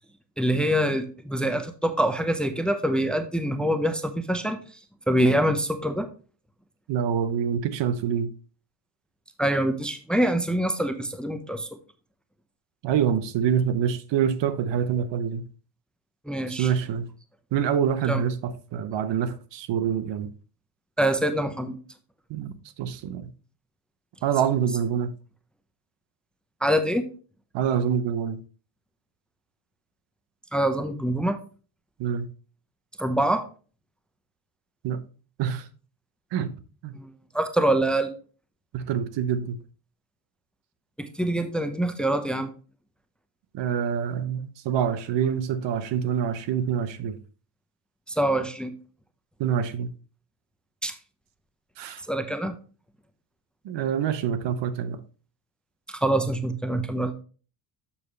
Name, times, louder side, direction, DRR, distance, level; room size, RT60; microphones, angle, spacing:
voice 1, 0.4-4.6 5.1-6.1 9.4-11.7 16.3-16.7 18.1-18.2 21.0-21.8 26.6-27.0 30.5-31.4 33.0-33.4 36.9-38.1 41.0-42.5 48.1-48.7 50.8-50.9 52.1-52.5 55.9-57.1, right 1 dB, ahead, 0.7 m, -25 dB
voice 2, 6.9-8.3 12.8-15.4 16.5-17.1 17.5-20.3 22.3-22.5 22.8-23.3 24.2-25.1 27.5-28.4 32.0-32.3 34.8-35.0 35.4-35.6 36.3-36.5 36.8-36.9 38.7-39.6 43.5-47.2 49.4-49.9 51.8-52.0 53.6-55.0, right 8 dB, 60° right, 0.9 m, -26 dB
7.3 x 6.4 x 3.3 m
cardioid pair, 105°, 49 cm